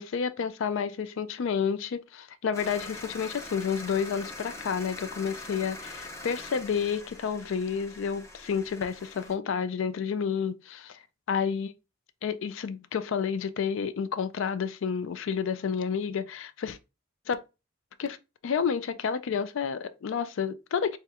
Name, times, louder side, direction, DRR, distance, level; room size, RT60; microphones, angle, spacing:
voice 1, 0.0-11.0 11.3-11.7 12.2-16.8 17.3-17.4 18.0-18.2 18.4-21.0, left 6 dB, 65° left, 0.4 m, -30 dB
sound 1, 2.5-9.3, left 2 dB, 15° left, 0.7 m, -43 dB
4.2 x 2.2 x 3.6 m
head